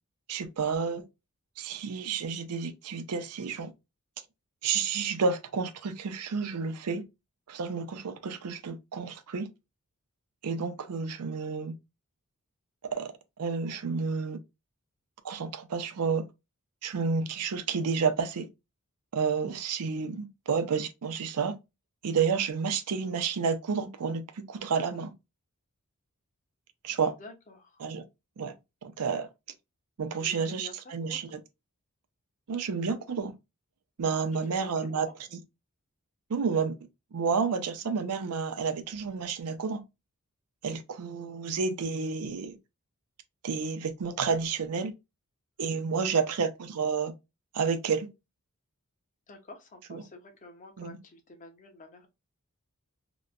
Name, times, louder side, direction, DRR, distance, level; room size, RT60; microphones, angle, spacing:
voice 1, 0.3-1.1 1.6-3.7 4.6-7.0 7.5-9.5 10.4-11.8 12.8-13.1 13.4-14.4 15.2-16.3 16.8-18.5 19.1-21.6 22.0-25.1 26.8-27.1 27.8-28.1 28.4-28.5 28.8-29.3 30.0-31.4 32.5-33.3 34.0-35.1 36.3-36.8 37.1-39.8 40.6-42.6 43.4-44.9 45.6-47.1 47.5-48.1 49.9-50.1 50.8-51.0, right 5 dB, 85° right, 0.5 m, -30 dB
voice 2, 27.2-27.8 30.2-31.2 34.3-35.1 45.9-46.3 49.3-52.1, left 2 dB, 35° left, 0.6 m, -50 dB
2.9 x 2.1 x 2.4 m
head